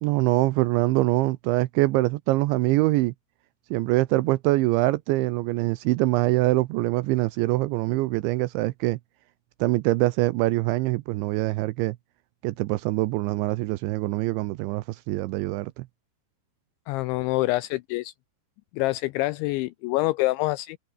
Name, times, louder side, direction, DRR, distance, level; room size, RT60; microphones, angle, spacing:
voice 1, 0.0-3.1 3.7-9.0 9.6-12.0 12.4-15.9, right 19 dB, 80° right, 2.8 m, -24 dB
voice 2, 16.9-18.1 18.7-20.8, left 20 dB, 85° left, 2.6 m, -26 dB
omnidirectional pair, 5.8 m